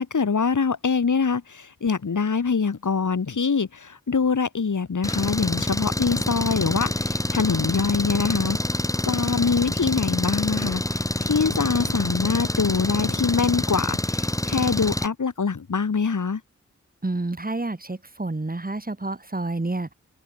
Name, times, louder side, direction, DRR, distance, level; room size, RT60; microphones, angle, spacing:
voice 1, 0.0-8.6 9.1-10.8 11.2-16.4, left 5 dB, 80° left, 4.4 m, -24 dB
Engine, 5.0-15.1, left 1 dB, 10° left, 1.1 m, -26 dB
voice 2, 17.0-19.9, right 2 dB, 30° right, 2.7 m, -29 dB
cardioid pair, 45°, 30 cm